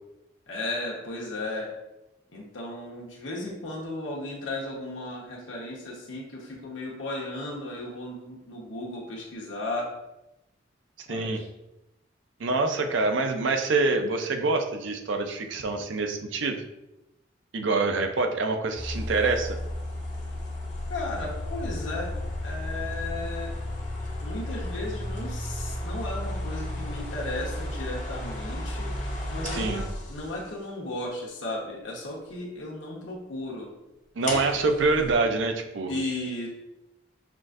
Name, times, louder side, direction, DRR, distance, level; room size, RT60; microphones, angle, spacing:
voice 1, 0.5-1.7 2.3-9.9 11.1-11.5 20.9-22.1 22.4-23.5 24.2-33.7 35.9-36.5, left 2 dB, 85° left, -3 dB, 1.1 m, -35 dB
voice 2, 11.1-11.4 12.4-16.6 17.5-19.6 29.5-29.8 34.2-35.9, right 3 dB, 80° right, 5 dB, 0.5 m, -26 dB
sound 1, 18.8-30.5 34.2-35.1, left 1 dB, 40° left, 0.7 m, -33 dB
5.9 x 2.5 x 2.5 m, 0.94 s
head